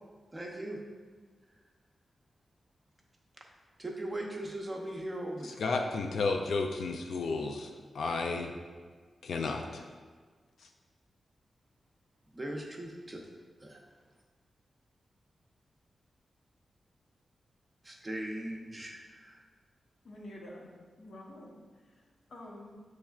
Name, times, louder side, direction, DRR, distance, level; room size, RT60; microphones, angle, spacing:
voice 1, 0.3-0.8 3.8-5.5 12.3-13.2 13.6-13.8 17.8-19.4, right 1 dB, 20° right, -1 dB, 0.6 m, -39 dB
voice 2, 5.4-8.5 9.2-9.9, left 3 dB, 85° left, 3 dB, 0.3 m, -32 dB
voice 3, 20.0-21.6 21.8-22.0 22.3-22.8, left 1 dB, 65° left, -3 dB, 0.9 m, -48 dB
7.0 x 3.1 x 2.3 m, 1.5 s
wide cardioid pair, 110°, 0 cm